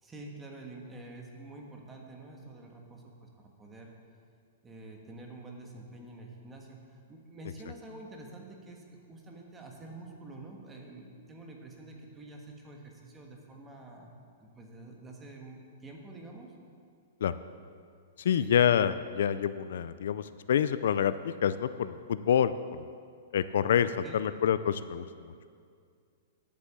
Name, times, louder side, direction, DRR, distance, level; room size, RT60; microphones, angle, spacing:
voice 1, 0.0-3.3 3.6-3.9 4.6-14.1 14.4-16.5 18.4-18.5 24.0-24.2, right 2 dB, 10° right, 0 dB, 1.4 m, -47 dB
voice 2, 18.2-22.8 23.3-25.1, left 9 dB, 70° left, 14 dB, 0.4 m, -27 dB
10.5 x 8.4 x 7.2 m, 2.2 s
hypercardioid pair, 165°, 0 cm